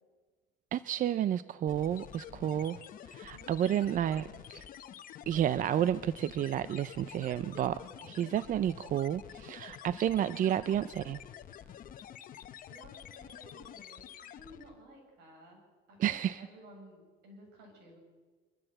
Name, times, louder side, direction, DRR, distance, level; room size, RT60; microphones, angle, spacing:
voice 1, 0.7-2.8 3.1-4.2 4.5-4.6 5.3-7.8 8.0-11.2 16.0-16.4, right 10 dB, 50° right, 15 dB, 0.5 m, -31 dB
sound 1, 1.7-14.8, left 10 dB, 55° left, 1.0 m, -49 dB
voice 2, 2.2-2.8 3.2-4.5 7.7-8.3 11.6-11.9 12.7-18.0, right 1 dB, 85° right, 1 dB, 7.5 m, -56 dB
23.5 x 14.0 x 7.9 m, 1.4 s
cardioid pair, 110°, 17 cm